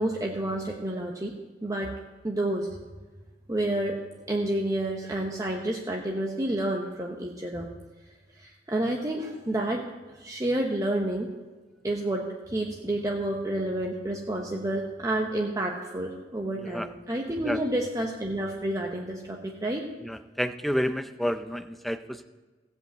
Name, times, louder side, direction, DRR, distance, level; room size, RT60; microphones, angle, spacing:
voice 1, 0.0-1.3 1.6-1.9 2.2-2.7 3.5-4.0 4.3-7.7 8.4-11.3 11.8-19.9, right 1 dB, 20° right, 0 dB, 0.8 m, -29 dB
voice 2, 16.6-16.9 17.4-17.6 20.0-22.2, equal, ahead, 10 dB, 0.5 m, -30 dB
15.5 x 5.4 x 7.8 m, 1.3 s
head